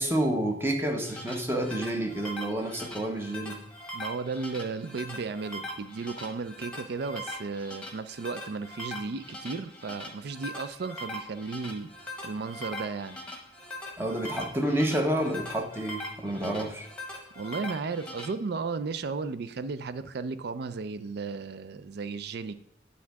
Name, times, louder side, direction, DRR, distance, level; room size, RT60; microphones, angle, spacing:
voice 1, 0.0-3.6 14.0-16.9, right 1 dB, 15° right, 0.7 m, -29 dB
sound 1, 0.8-18.3, left 1 dB, 5° left, 1.1 m, -41 dB
voice 2, 3.9-11.9 12.2-13.2 17.4-22.5, right 4 dB, 60° right, 0.4 m, -34 dB
9.4 x 3.7 x 4.7 m
head